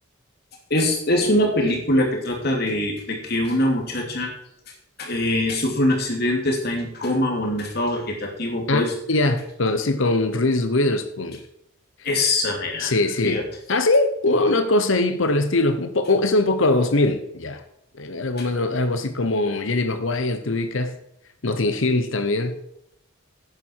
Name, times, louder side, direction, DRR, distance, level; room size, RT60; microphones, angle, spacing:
voice 1, 0.7-4.3 5.0-8.9 12.0-12.9 13.2-13.4 18.4-18.5, left 1 dB, 50° left, 2.9 m, -23 dB
voice 2, 9.1-11.4 12.8-13.4 13.7-17.6 17.9-21.0 21.4-22.6, left 2 dB, 70° left, 1.0 m, -22 dB
11.0 x 9.9 x 4.7 m
head